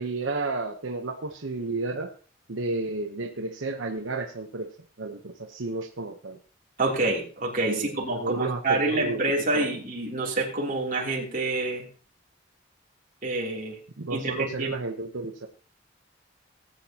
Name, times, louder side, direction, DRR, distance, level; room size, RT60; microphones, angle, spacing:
voice 1, 0.0-2.1 2.5-4.7 5.0-6.4 7.6-9.2 9.5-9.7 14.0-15.5, right 3 dB, 85° right, 4 dB, 1.0 m, -32 dB
voice 2, 6.8-11.8 13.2-13.8 14.1-14.7, right 2 dB, 45° right, -2 dB, 3.2 m, -27 dB
18.5 x 9.0 x 2.9 m, 0.39 s
head